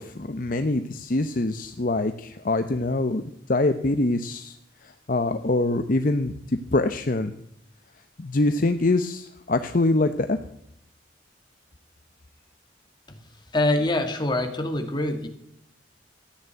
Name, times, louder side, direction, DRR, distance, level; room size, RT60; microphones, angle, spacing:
voice 1, 0.0-4.6 4.8-7.3 8.2-10.4, left 2 dB, 45° left, 9 dB, 0.8 m, -24 dB
voice 2, 13.5-15.3, left 1 dB, 25° left, 4 dB, 2.2 m, -24 dB
14.5 x 9.5 x 9.2 m, 0.74 s
head